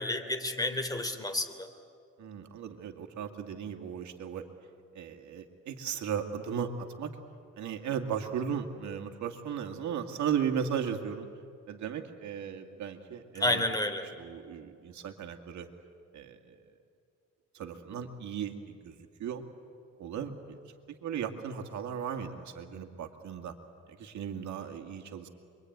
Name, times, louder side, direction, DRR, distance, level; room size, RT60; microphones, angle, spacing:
voice 1, 0.0-1.7 13.4-14.1, left 1 dB, 10° left, 7 dB, 3.1 m, -30 dB
voice 2, 2.2-4.5 4.9-7.1 7.6-11.3 11.7-13.6 14.2-15.7 16.1-16.6 17.5-19.4 20.0-20.6 20.9-23.5 23.9-25.3, right 8 dB, 70° right, 5 dB, 2.3 m, -36 dB
27.0 x 23.5 x 9.5 m, 2.3 s
cardioid pair, 90°, 30 cm